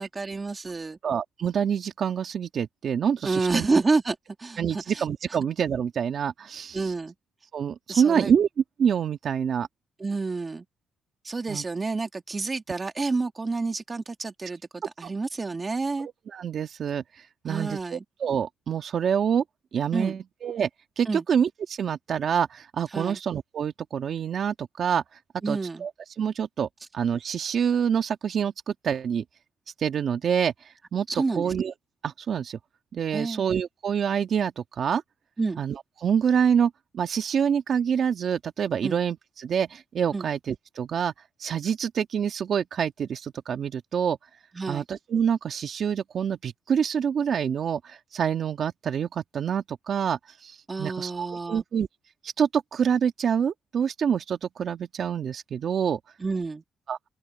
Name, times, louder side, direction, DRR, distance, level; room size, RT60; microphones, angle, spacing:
voice 1, 0.0-1.0 3.2-5.0 5.3-5.4 6.7-7.1 7.9-8.3 10.0-10.6 11.2-16.1 17.5-18.0 19.9-20.2 21.1-21.2 22.9-23.2 25.4-25.8 31.1-31.5 33.1-33.4 35.4-35.6 38.8-39.0 40.1-40.3 44.6-44.8 50.7-51.6 56.2-56.6, right 3 dB, 25° right, 2.3 m, -29 dB
voice 2, 1.0-3.7 4.6-6.8 7.5-8.5 8.8-9.7 11.5-11.6 15.0-15.1 16.3-19.4 19.7-20.7 21.0-25.0 25.5-25.9 26.2-26.7 26.9-29.2 29.8-31.7 32.0-32.6 32.9-35.0 35.6-41.1 41.4-44.2 44.7-51.9 52.2-56.0 56.9-57.0, right 7 dB, 55° right, 1.9 m, -26 dB
open air
cardioid pair, 90°, 0 cm